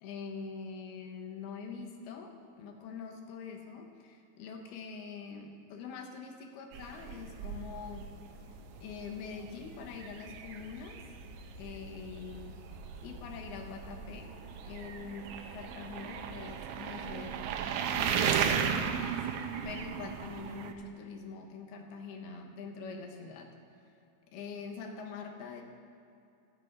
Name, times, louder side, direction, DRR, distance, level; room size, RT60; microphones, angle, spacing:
voice 1, 0.0-8.2 8.8-11.0 11.6-12.6 13.0-14.4 14.7-17.5 17.9-19.2 19.6-23.5 24.3-25.6, left 5 dB, 90° left, 4 dB, 3.1 m, -44 dB
sound 1, 6.7-20.7, right 7 dB, 85° right, 1.8 m, -36 dB
sound 2, 7.4-16.7, equal, 65° left, 5.1 m, -52 dB
15.5 x 12.0 x 4.0 m, 2.6 s
omnidirectional pair, 4.3 m